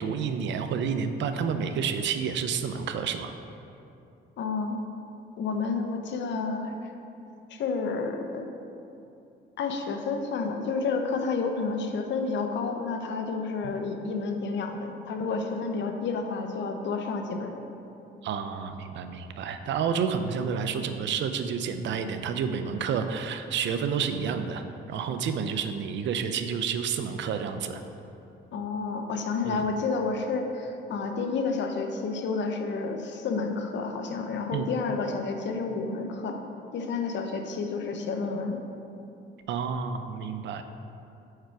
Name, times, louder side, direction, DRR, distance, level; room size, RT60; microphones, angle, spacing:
voice 1, 0.0-3.3 13.6-13.7 18.2-27.8 29.5-29.6 34.5-34.7 39.5-40.6, right 6 dB, 65° right, 8 dB, 0.4 m, -30 dB
voice 2, 4.4-4.8 5.4-6.9 7.5-8.4 9.6-17.6 28.5-36.4 36.7-38.6, left 4 dB, 65° left, 5 dB, 0.6 m, -30 dB
4.7 x 4.4 x 4.7 m, 2.8 s
cardioid pair, 90°, 20 cm